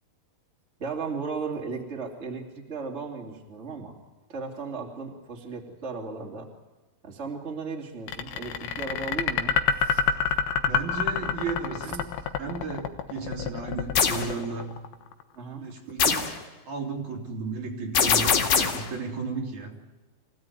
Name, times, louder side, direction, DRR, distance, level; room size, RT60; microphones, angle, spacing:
voice 1, 0.8-3.9 4.3-6.5 7.0-10.0 11.8-11.9 15.3-15.7, right 4 dB, 20° right, 0 dB, 2.9 m, -36 dB
sound 1, 8.1-15.2, left 7 dB, 80° left, 3.1 m, -27 dB
voice 2, 10.6-12.1 12.4-14.8 15.6-16.3 16.7-19.8, right 4 dB, 55° right, 0 dB, 4.0 m, -34 dB
sound 2, 13.9-14.3 16.0-16.4 17.9-18.9, left 6 dB, 60° left, 3.6 m, -22 dB
26.5 x 17.0 x 9.4 m, 1.3 s
omnidirectional pair, 4.4 m